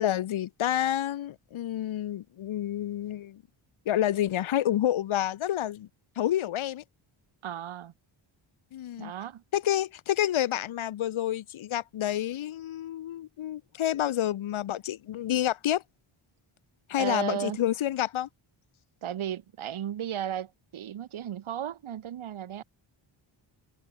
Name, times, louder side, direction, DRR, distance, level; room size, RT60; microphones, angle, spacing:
voice 1, 0.0-3.4 3.8-5.9 6.2-6.8 8.7-9.1 9.5-15.8 16.9-18.3, left 12 dB, 75° left, 1.5 m, -29 dB
voice 2, 7.4-7.9 9.0-9.4 17.0-17.6 19.0-22.6, right 10 dB, 75° right, 4.1 m, -34 dB
wide cardioid pair, 165°, 48 cm